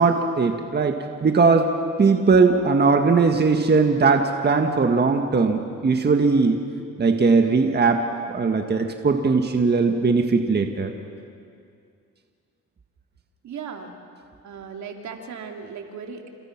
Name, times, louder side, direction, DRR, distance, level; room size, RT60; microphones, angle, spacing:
voice 1, 0.0-1.7 2.0-6.6 7.0-10.9, right 4 dB, 35° right, 4 dB, 1.8 m, -19 dB
voice 2, 13.4-13.9 14.4-16.2, right 6 dB, 70° right, 3 dB, 2.9 m, -36 dB
29.0 x 28.0 x 6.1 m, 2.3 s
cardioid pair, 90°, 30 cm